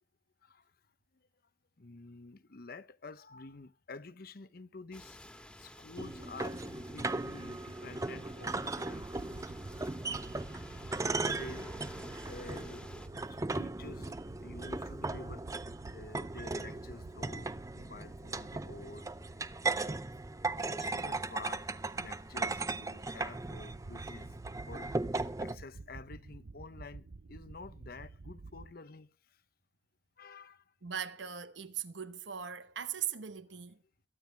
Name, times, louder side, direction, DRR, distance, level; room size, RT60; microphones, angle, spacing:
voice 1, 0.4-0.7 1.1-1.3 1.8-5.2 5.6-9.5 10.5-15.5 15.9-19.4 19.7-20.0 20.6-24.4 24.7-29.4 30.2-30.6 31.2-31.3, left 3 dB, 55° left, 0.9 m, -50 dB
sound 1, 4.9-13.1, left 1 dB, 5° left, 1.7 m, -52 dB
sound 2, 6.0-25.6, right 3 dB, 20° right, 0.6 m, -38 dB
sound 3, 8.9-28.7, right 3 dB, 60° right, 0.7 m, -51 dB
voice 2, 30.8-33.8, right 8 dB, 85° right, 1.1 m, -39 dB
22.5 x 9.3 x 3.3 m
head